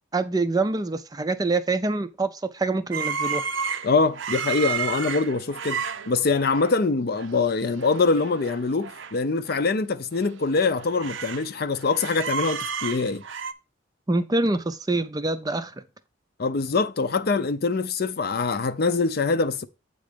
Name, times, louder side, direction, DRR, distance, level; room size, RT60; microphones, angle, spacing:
voice 1, 0.1-3.4 14.1-15.8, right 2 dB, 20° right, 0.4 m, -25 dB
sound 1, 2.9-6.8 7.2-7.4 7.6-9.1 9.5-9.6 10.1-11.5 11.8-13.5, right 6 dB, 70° right, 0.6 m, -32 dB
voice 2, 3.8-13.2 16.4-19.7, left 4 dB, 50° left, 0.5 m, -24 dB
8.4 x 3.9 x 5.1 m
head